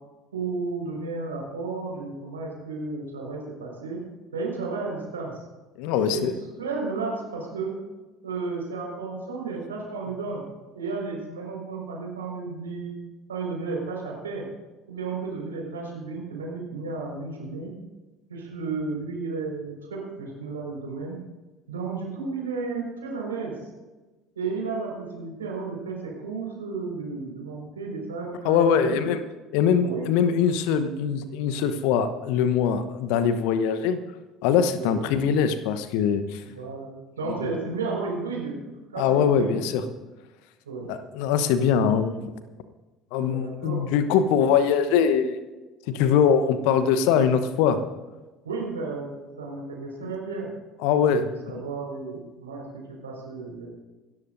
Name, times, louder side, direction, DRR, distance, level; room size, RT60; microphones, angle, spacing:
voice 1, 0.3-4.0 4.3-5.4 5.9-6.3 6.6-7.7 8.2-10.4 10.7-13.0 13.3-14.4 14.9-17.7 18.3-21.2 21.7-23.5 24.3-29.0 29.8-30.1 34.7-35.0 36.5-36.9 37.2-38.6 38.9-39.6 40.6-40.9 43.2-43.8 48.4-49.1 49.4-50.5 51.0-52.6 52.9-53.7, right 4 dB, 80° right, -2 dB, 5.0 m, -33 dB
voice 2, 5.8-6.3 28.4-29.2 29.5-34.0 34.4-36.4 39.0-39.8 40.9-42.2 43.1-45.4 45.9-47.8 50.0-50.1 50.8-51.2 51.5-51.6, left 7 dB, 60° left, 11 dB, 1.0 m, -22 dB
26.5 x 13.5 x 2.7 m, 1.2 s
figure-of-eight pair, 60°, 0 cm